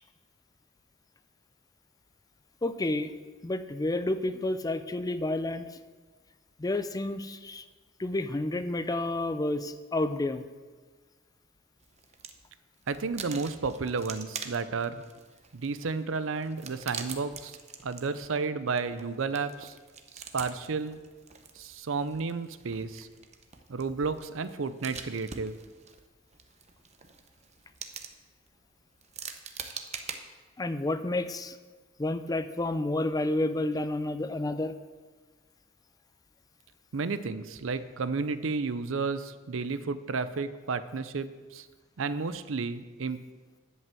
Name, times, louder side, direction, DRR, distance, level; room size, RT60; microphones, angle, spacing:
voice 1, 2.6-3.1 3.4-5.7 6.6-7.6 8.0-10.4 30.6-31.6 32.0-34.7, left 2 dB, 20° left, 11 dB, 0.5 m, -30 dB
sound 1, 11.8-12.5 12.8-30.2, right 6 dB, 35° right, 0.8 m, -45 dB
voice 2, 12.9-15.0 15.5-17.6 17.8-19.7 20.3-21.0 21.6-23.1 23.7-25.6 36.9-41.6 42.0-43.2, right 4 dB, 80° right, 13 dB, 0.6 m, -32 dB
11.0 x 5.5 x 7.7 m, 1.4 s
head